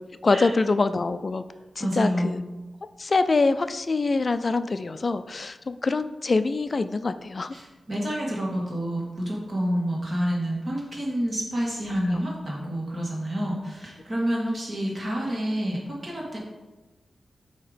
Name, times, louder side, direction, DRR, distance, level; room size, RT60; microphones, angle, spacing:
voice 1, 0.2-1.4 1.8-2.4 3.0-7.5 12.1-12.2, left 3 dB, 40° left, 11 dB, 0.3 m, -24 dB
voice 2, 1.8-2.3 7.5-16.4, equal, 40° right, -3 dB, 1.7 m, -28 dB
8.5 x 2.9 x 5.0 m, 1.2 s
wide cardioid pair, 115°, 0 cm